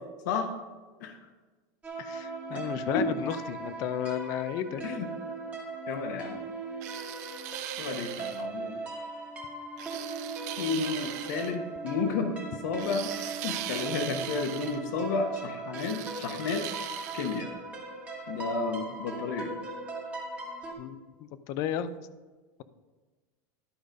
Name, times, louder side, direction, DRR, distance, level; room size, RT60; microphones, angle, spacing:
sound 1, 1.8-20.7, right 3 dB, 15° right, 1.2 m, -39 dB
voice 1, 2.0-4.8 20.8-22.0, left 9 dB, 35° left, 14 dB, 0.4 m, -33 dB
voice 2, 2.5-3.0 4.8-5.1 5.9-6.4 7.8-8.8 10.6-12.4 12.6-13.1 13.4-16.6 17.1-17.5 18.3-19.5, left 4 dB, 70° left, 6 dB, 1.1 m, -32 dB
sound 2, 6.8-8.5 9.8-11.6 12.8-14.8 15.7-17.4, right 12 dB, 60° right, 0.7 m, -39 dB
11.5 x 5.0 x 5.1 m, 1.3 s
supercardioid pair, 175°, 10 cm